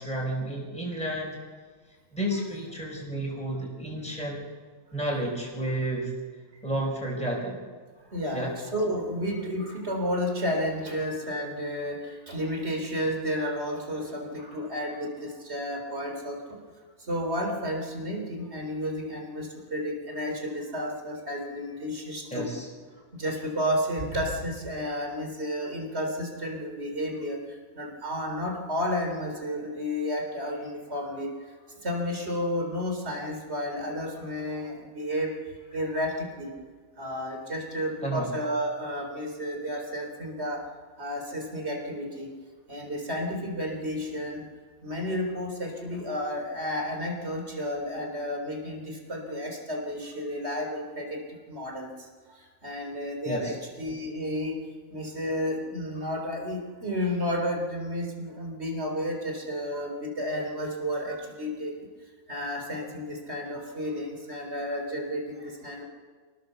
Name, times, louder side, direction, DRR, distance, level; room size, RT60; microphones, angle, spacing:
voice 1, 0.0-1.4 2.1-4.4 4.9-6.1 6.6-7.6 8.3-8.5 22.3-22.7 38.0-38.3 53.2-53.5, right 1 dB, 5° left, -2 dB, 4.9 m, -31 dB
voice 2, 8.1-12.0 12.3-16.4 17.1-22.5 23.2-27.4 27.8-31.3 31.8-35.3 35.7-36.5 37.0-40.6 41.0-42.3 42.7-44.4 44.8-51.2 51.5-51.9 52.6-54.6 54.9-61.7 62.3-65.8, equal, 50° right, 2 dB, 4.2 m, -31 dB
27.0 x 19.0 x 7.0 m, 1.5 s
omnidirectional pair, 1.4 m